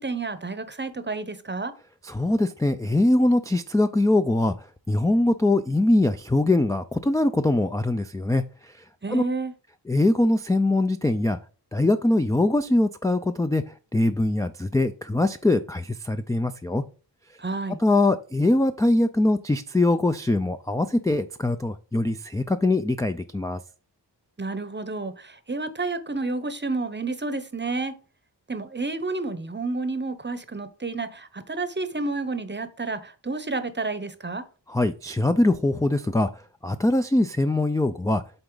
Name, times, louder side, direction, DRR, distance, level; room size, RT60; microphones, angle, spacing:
voice 1, 0.0-1.7 9.0-9.5 17.4-17.8 24.4-27.9 28.5-34.4, right 3 dB, 25° right, 0.8 m, -30 dB
voice 2, 2.0-4.5 4.9-8.7 9.1-9.2 9.9-11.4 11.7-13.6 13.9-16.8 17.8-23.6 34.7-38.2, left 2 dB, 10° left, 0.3 m, -22 dB
7.9 x 4.0 x 3.8 m
wide cardioid pair, 60°, 43 cm